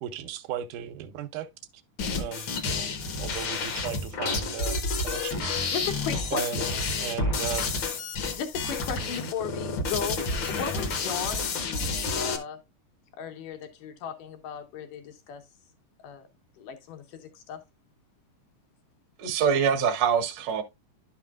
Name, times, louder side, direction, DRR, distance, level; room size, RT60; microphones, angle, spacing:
voice 1, 0.0-1.5 2.1-5.6 6.3-7.7, right 9 dB, 85° right, 2.2 m, -36 dB
sound 1, 2.0-12.4, left 3 dB, 60° left, 1.3 m, -30 dB
voice 2, 5.7-6.4 8.2-12.6 13.1-15.4 16.0-16.2 16.6-17.6, left 7 dB, 80° left, 2.7 m, -36 dB
voice 3, 19.2-20.6, right 7 dB, 65° right, 1.1 m, -24 dB
11.5 x 5.7 x 2.4 m
omnidirectional pair, 3.7 m